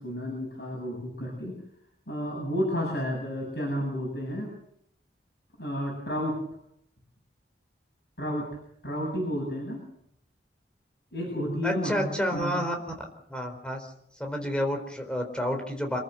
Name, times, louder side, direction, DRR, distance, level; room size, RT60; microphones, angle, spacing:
voice 1, 0.0-1.6 2.1-4.5 5.6-6.4 8.2-8.5 8.8-9.8 11.1-12.6 14.4-14.5, equal, 65° left, -2 dB, 7.8 m, -31 dB
voice 2, 11.6-12.7 13.3-13.9 14.2-16.0, equal, 5° left, 4 dB, 4.3 m, -29 dB
27.0 x 14.5 x 7.9 m, 0.71 s
head